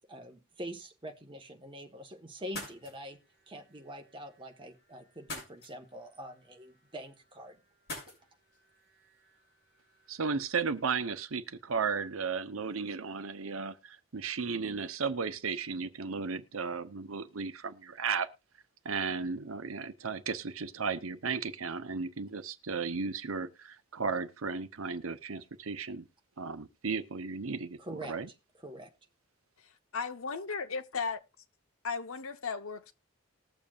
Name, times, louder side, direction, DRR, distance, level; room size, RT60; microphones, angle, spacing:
voice 1, 0.1-3.2 3.5-7.6 27.8-28.1 28.6-28.9, equal, 25° right, 1.2 m, -44 dB
sound 1, 2.4-10.8, left 1 dB, 50° left, 6.9 m, -50 dB
voice 2, 10.1-18.3 18.8-26.1 26.4-27.8 28.1-28.3, right 5 dB, 80° right, 0.8 m, -35 dB
voice 3, 29.6-31.2 31.8-32.9, left 5 dB, 85° left, 1.0 m, -36 dB
20.0 x 7.1 x 2.4 m
head